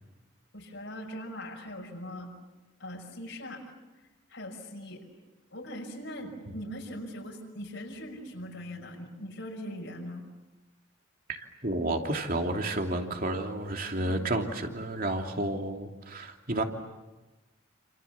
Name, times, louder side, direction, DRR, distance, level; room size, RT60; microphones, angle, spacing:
voice 1, 0.5-2.3 2.8-3.6 4.3-5.1 5.5-10.2 13.9-14.2, equal, 70° left, -1 dB, 6.1 m, -41 dB
voice 2, 11.3-16.6, right 1 dB, 45° right, 3 dB, 2.9 m, -31 dB
29.0 x 28.0 x 7.3 m, 1.1 s
head